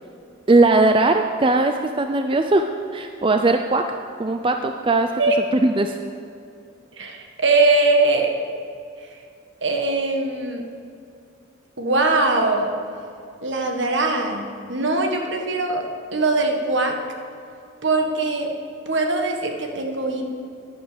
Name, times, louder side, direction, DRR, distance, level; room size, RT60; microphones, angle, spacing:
voice 1, 0.5-2.7 2.9-3.8 4.2-5.1 5.6-6.0, right 2 dB, 25° right, 6 dB, 0.4 m, -19 dB
voice 2, 6.9-8.3 9.1-9.2 9.6-10.6 11.8-12.7 13.4-15.9 16.1-17.0 17.8-18.5 18.8-20.2, right 3 dB, 65° right, 3 dB, 1.5 m, -21 dB
11.0 x 10.5 x 7.0 m, 2.5 s
head